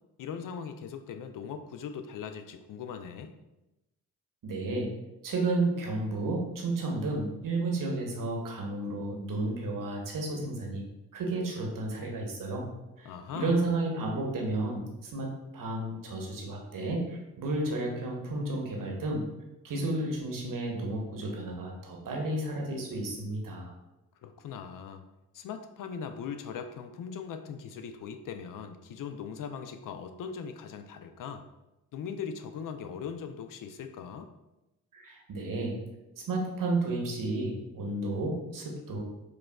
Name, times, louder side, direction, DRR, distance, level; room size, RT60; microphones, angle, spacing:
voice 1, 0.2-3.3 13.0-13.6 24.2-25.0 25.3-31.4 31.9-34.3, left 7 dB, 55° left, 8 dB, 0.5 m, -40 dB
voice 2, 4.4-4.9 5.2-10.8 11.1-12.7 13.0-19.2 19.6-23.7 34.9-35.8 36.3-39.0, right 2 dB, 55° right, 0 dB, 1.0 m, -32 dB
4.9 x 2.3 x 2.2 m, 0.97 s
supercardioid pair, 45°, 38 cm